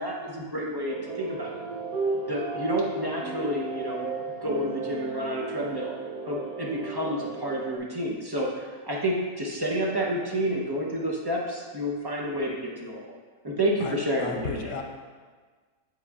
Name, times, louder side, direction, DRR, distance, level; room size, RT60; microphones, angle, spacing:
voice 1, 0.0-1.5 2.1-5.9 6.3-13.0 13.4-14.7, equal, 40° right, -3 dB, 0.3 m, -30 dB
sound 1, 0.9-7.8, right 4 dB, 70° right, 1.1 m, -34 dB
voice 2, 13.8-14.8, left 4 dB, 85° left, 2 dB, 1.4 m, -35 dB
8.1 x 7.7 x 2.4 m, 1.5 s
omnidirectional pair, 1.8 m